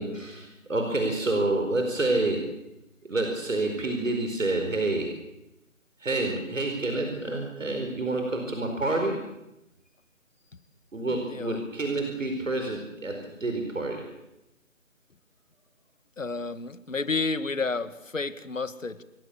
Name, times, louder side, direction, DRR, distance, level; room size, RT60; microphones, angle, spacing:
voice 1, 0.0-2.5 3.0-5.1 6.0-9.2 10.9-14.0, right 2 dB, 70° right, 4 dB, 4.9 m, -28 dB
voice 2, 11.1-11.6 16.2-19.0, left 3 dB, 70° left, 14 dB, 1.9 m, -31 dB
28.0 x 17.0 x 7.2 m, 0.92 s
figure-of-eight pair, 175°, 40 cm